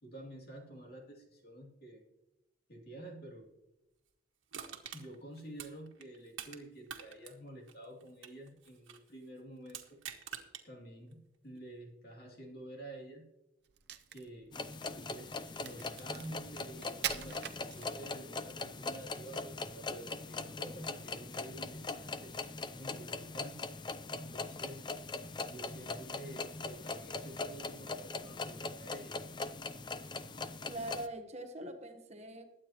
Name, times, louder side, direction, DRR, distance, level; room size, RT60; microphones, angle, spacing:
voice 1, 0.0-2.0 2.7-3.5 4.9-10.0 10.6-13.3 14.1-14.5 15.1-22.3 22.8-23.7 24.1-24.9 25.4-29.2, right 1 dB, 50° left, 0 dB, 2.7 m, -50 dB
Crushing, 4.5-6.6 6.9-9.1 9.7-10.6 11.1-11.2, right 8 dB, 85° right, 1.6 m, -46 dB
Crack, 13.7-18.3, right 10 dB, 55° right, 0.7 m, -43 dB
sound 1, 14.5-31.1, left 3 dB, 25° left, 0.5 m, -41 dB
voice 2, 30.7-32.4, right 1 dB, 35° right, 6 dB, 1.1 m, -42 dB
21.0 x 8.8 x 3.0 m, 0.93 s
head